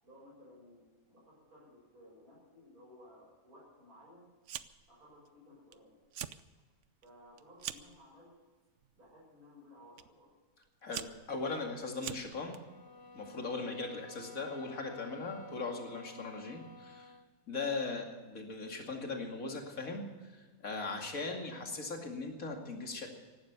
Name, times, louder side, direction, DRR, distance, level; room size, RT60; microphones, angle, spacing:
voice 1, 0.0-4.3 4.9-6.0 7.0-8.3 9.0-10.3 21.4-21.7, left 1 dB, 85° right, -5 dB, 6.9 m, -58 dB
Fire, 4.4-4.9 5.3-5.7 6.0-6.4 6.8-8.0 8.8-9.1 10.0-10.1 10.6-12.6, right 10 dB, 60° right, 0.9 m, -43 dB
voice 2, 10.8-12.6 13.1-17.1 17.5-20.1 20.3-23.1, left 3 dB, 70° left, 2 dB, 2.8 m, -39 dB
sound 1, 12.6-17.3, left 3 dB, 15° left, 0.9 m, -53 dB
16.5 x 12.0 x 6.7 m, 1.4 s
omnidirectional pair, 1.5 m